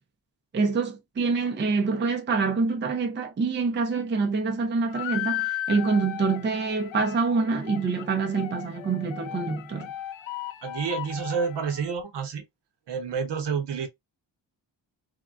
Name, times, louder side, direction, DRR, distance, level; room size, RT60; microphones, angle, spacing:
voice 1, 0.5-9.9, right 4 dB, 25° right, 0.5 m, -26 dB
sound 1, 4.9-11.9, left 13 dB, 90° left, 0.5 m, -36 dB
voice 2, 10.6-12.4 12.9-13.9, right 6 dB, 65° right, 0.9 m, -29 dB
3.6 x 2.2 x 2.3 m
wide cardioid pair, 160°, 44 cm